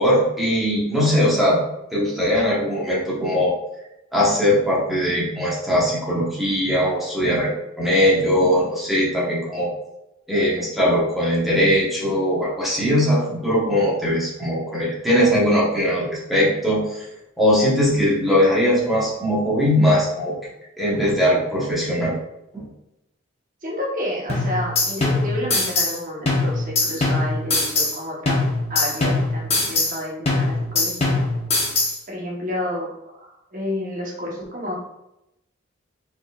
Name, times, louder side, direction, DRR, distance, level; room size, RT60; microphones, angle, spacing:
voice 1, 0.0-1.6 1.9-3.5 4.1-7.5 7.8-9.7 10.3-17.0 17.4-20.4 20.8-22.1 22.5-22.7, equal, ahead, -7 dB, 1.1 m, -20 dB
voice 2, 23.6-28.4 28.7-31.2 32.1-32.9 33.2-34.8, left 1 dB, 40° right, -3 dB, 1.2 m, -30 dB
sound 1, 24.3-26.0 26.3-28.0 28.3-30.0 30.3-32.0, left 2 dB, 30° left, 0.9 m, -22 dB
4.6 x 4.2 x 2.4 m, 0.88 s
head